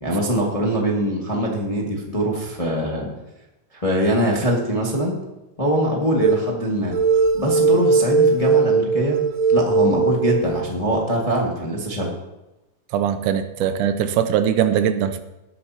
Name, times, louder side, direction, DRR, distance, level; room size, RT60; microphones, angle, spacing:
voice 1, 0.0-3.1 3.7-5.2 5.6-6.9 7.3-9.2 9.5-12.1, right 1 dB, 15° left, -2 dB, 1.2 m, -22 dB
sound 1, 6.2-6.5 6.9-10.7, right 4 dB, 65° right, 2.0 m, -19 dB
voice 2, 12.9-15.2, right 9 dB, 80° right, 10 dB, 2.2 m, -21 dB
18.5 x 9.4 x 2.9 m, 0.99 s
omnidirectional pair, 3.7 m